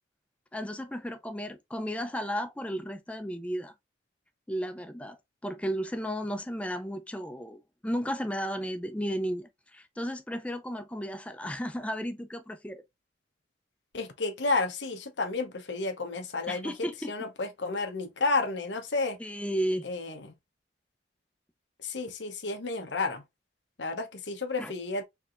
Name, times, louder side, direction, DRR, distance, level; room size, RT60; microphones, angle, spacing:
voice 1, 0.5-3.7 4.5-12.8 16.5-17.1 19.2-19.9 24.6-24.7, equal, 5° left, 0.5 m, -34 dB
voice 2, 13.9-16.7 17.1-19.2 19.8-20.2 21.8-23.2 23.8-25.0, left 3 dB, 90° left, 0.9 m, -31 dB
4.7 x 3.4 x 2.5 m
head